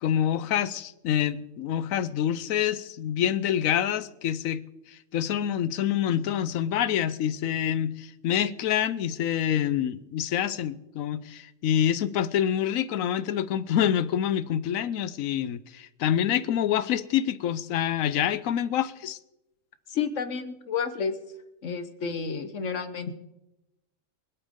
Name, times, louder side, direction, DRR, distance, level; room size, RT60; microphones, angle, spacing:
voice 1, 0.0-4.6 4.9-19.2, left 10 dB, 85° left, 1.1 m, -26 dB
voice 2, 19.9-21.2 21.6-23.1, left 6 dB, 70° left, 1.4 m, -30 dB
26.0 x 8.7 x 3.7 m
omnidirectional pair, 1.4 m